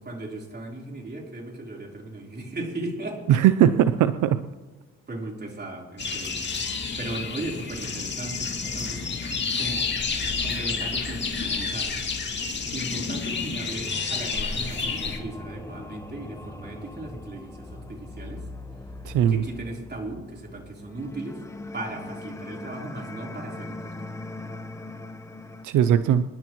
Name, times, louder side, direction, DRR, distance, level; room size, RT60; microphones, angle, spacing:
voice 1, 0.0-3.2 5.1-6.4 7.0-9.0 9.6-9.9 10.4-12.2 12.7-18.4 19.3-21.4 21.7-24.1, right 2 dB, 35° right, -1 dB, 3.8 m, -37 dB
voice 2, 3.3-4.4 19.1-19.4 25.6-26.2, right 10 dB, 80° right, 12 dB, 0.6 m, -19 dB
sound 1, 6.0-15.2, left 5 dB, 35° left, 2.3 m, -30 dB
sound 2, 8.6-25.6, left 2 dB, 10° left, 1.1 m, -41 dB
26.5 x 10.5 x 3.1 m, 1.1 s
cardioid pair, 90°, 30 cm